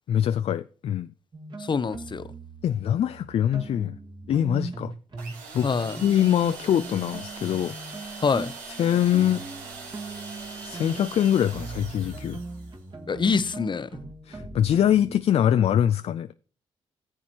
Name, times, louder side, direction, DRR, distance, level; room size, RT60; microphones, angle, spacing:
voice 1, 0.1-1.1 2.6-4.0 4.3-4.9 5.5-5.7 6.0-7.8 8.0-8.2 8.7-9.4 10.6-12.4 14.3-16.3, left 10 dB, 55° left, 0.4 m, -23 dB
sound 1, 1.3-5.4 5.7-15.2, right 3 dB, 40° right, 1.9 m, -40 dB
voice 2, 1.6-2.3 5.6-6.0 8.2-8.5 13.1-13.9, left 5 dB, 40° left, 0.8 m, -25 dB
sound 2, 5.2-12.8, right 4 dB, 85° right, 1.7 m, -41 dB
14.5 x 7.4 x 2.9 m
hypercardioid pair, 45°, 13 cm